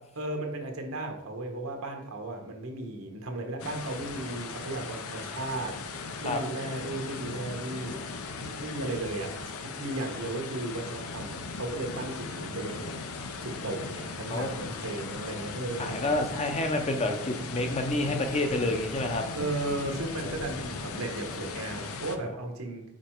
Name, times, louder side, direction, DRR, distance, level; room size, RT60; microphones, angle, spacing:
voice 1, 0.2-5.8 6.2-8.0 8.4-12.9 13.4-15.9 19.4-22.8, right 2 dB, 75° right, 3 dB, 1.1 m, -35 dB
sound 1, 3.6-22.2, left 4 dB, 80° left, 0.7 m, -38 dB
voice 2, 15.8-19.2 20.2-20.3 22.2-22.4, left 2 dB, 30° left, 5 dB, 0.7 m, -29 dB
5.1 x 4.7 x 4.5 m, 0.83 s
head